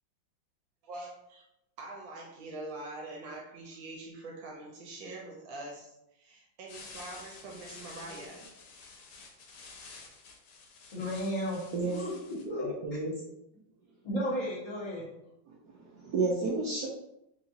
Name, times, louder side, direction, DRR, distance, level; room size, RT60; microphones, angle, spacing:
voice 1, 0.8-1.4 1.8-8.5, right 2 dB, 70° right, 0 dB, 1.3 m, -44 dB
sound 1, 6.7-12.4, left 4 dB, 85° left, 1.6 m, -50 dB
voice 2, 10.9-12.7 14.0-15.1, equal, 25° left, -6 dB, 1.1 m, -34 dB
voice 3, 12.4-13.1 15.6-16.9, right 3 dB, 85° right, -3 dB, 0.9 m, -31 dB
3.5 x 2.9 x 2.7 m, 0.83 s
omnidirectional pair, 2.3 m